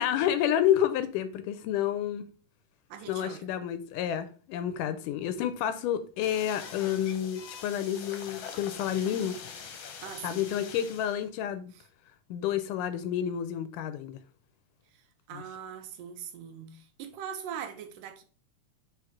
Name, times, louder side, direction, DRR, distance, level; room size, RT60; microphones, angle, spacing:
voice 1, 0.0-2.3 3.1-9.4 10.2-11.7 12.3-14.2 15.3-15.4, left 10 dB, 80° left, 2.1 m, -29 dB
voice 2, 2.9-3.5 10.0-10.5 11.7-11.8 15.3-18.2, right 8 dB, 85° right, 2.5 m, -41 dB
sound 1, 6.2-11.3, left 6 dB, 65° left, 1.7 m, -44 dB
4.9 x 4.6 x 4.6 m
omnidirectional pair, 3.7 m